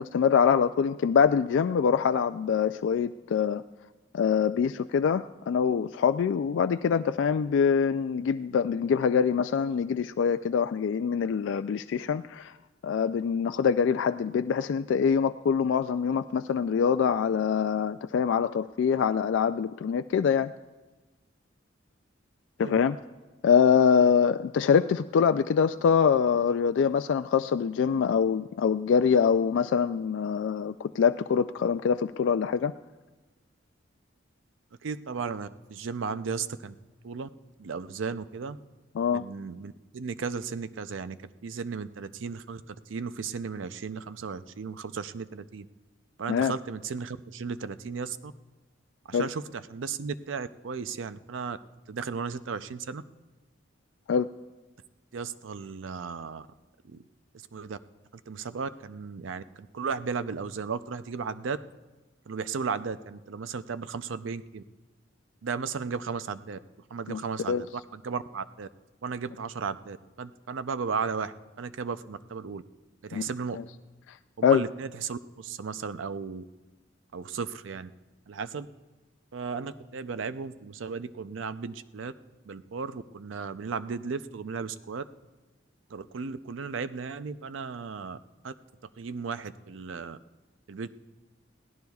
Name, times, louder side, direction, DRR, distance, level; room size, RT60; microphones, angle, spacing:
voice 1, 0.0-3.6 4.1-12.5 12.8-20.5 22.6-23.0 23.4-32.7 39.0-39.2 46.3-46.6 49.1-49.3 54.1-54.3 67.1-67.2 67.5-67.6 73.1-73.2 74.4-74.6, left 6 dB, 70° left, 10 dB, 0.3 m, -24 dB
voice 2, 34.8-36.7 37.0-37.3 37.6-38.6 39.1-41.2 41.4-42.6 42.9-45.7 46.2-48.3 49.1-51.6 51.9-53.0 55.1-56.5 56.9-57.0 57.5-57.8 58.3-61.6 62.3-64.6 65.4-66.6 66.9-68.7 69.0-72.6 73.0-73.6 74.4-76.4 77.1-77.9 78.3-78.7 79.3-82.1 82.5-85.0 85.9-88.2 88.4-88.5 89.0-90.2 90.7-90.9, right 5 dB, 85° right, 13 dB, 0.5 m, -35 dB
22.0 x 16.5 x 2.4 m, 1.2 s
head